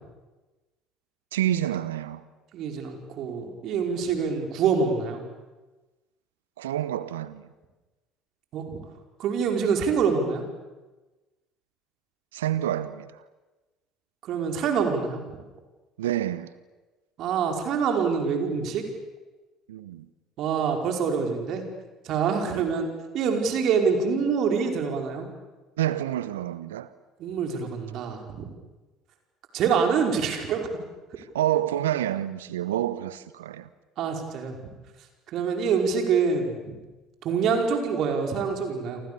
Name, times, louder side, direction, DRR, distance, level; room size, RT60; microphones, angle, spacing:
voice 1, 1.3-2.2 6.6-7.4 12.3-13.2 16.0-16.5 19.7-20.1 22.4-22.7 25.8-26.9 31.2-33.7, right 12 dB, 75° right, 0.9 m, -28 dB
voice 2, 2.5-5.2 8.5-8.8 9.2-10.4 14.2-15.4 17.2-18.8 20.4-21.6 22.0-25.3 27.2-28.5 29.5-30.7 34.0-34.5 35.3-36.6 37.2-39.0, right 6 dB, 55° right, 5.2 m, -25 dB
28.5 x 25.5 x 7.0 m
figure-of-eight pair, 60°, 0 cm